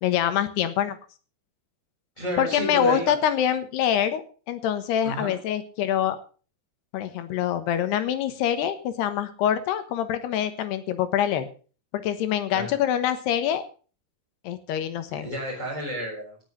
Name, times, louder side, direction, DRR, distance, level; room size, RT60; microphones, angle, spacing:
voice 1, 0.0-1.0 2.4-6.2 6.9-11.5 11.9-13.6 14.4-15.3, left 10 dB, 90° left, 11 dB, 3.4 m, -25 dB
voice 2, 2.2-3.1 5.0-5.3 12.5-12.7 15.1-16.4, equal, 10° left, -3 dB, 6.1 m, -31 dB
18.0 x 8.1 x 5.7 m, 0.38 s
omnidirectional pair, 4.6 m